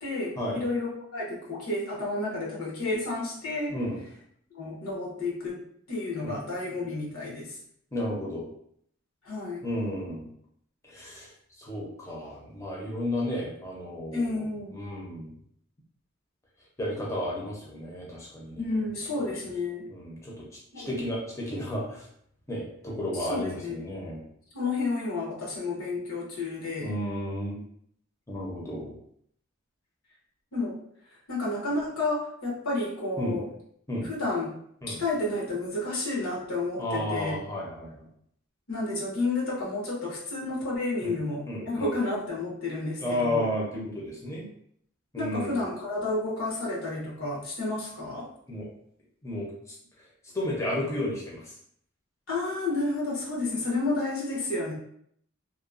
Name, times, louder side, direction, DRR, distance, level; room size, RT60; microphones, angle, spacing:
voice 1, 0.0-3.7 4.5-5.6 5.9-7.5 9.2-9.6 14.1-14.8 18.6-19.9 20.7-21.0 23.3-23.8 24.5-27.0 30.5-30.8 31.3-33.5 34.0-34.5 34.9-37.4 38.7-43.5 45.2-48.3 52.3-54.7, left 2 dB, 90° left, -4 dB, 1.0 m, -31 dB
voice 2, 3.7-4.0 6.2-6.3 7.9-8.5 9.6-10.3 10.8-11.3 11.6-14.5 14.7-15.3 16.8-18.7 19.9-20.4 20.8-22.1 22.5-24.2 26.8-27.6 28.3-29.0 33.2-33.4 33.9-34.1 34.8-35.0 36.8-37.9 41.0-41.2 41.5-41.9 43.0-44.5 45.1-45.6 48.5-48.7 49.2-49.5 50.3-51.5, left 1 dB, 15° left, -4 dB, 0.5 m, -32 dB
2.9 x 2.0 x 2.4 m, 0.66 s
head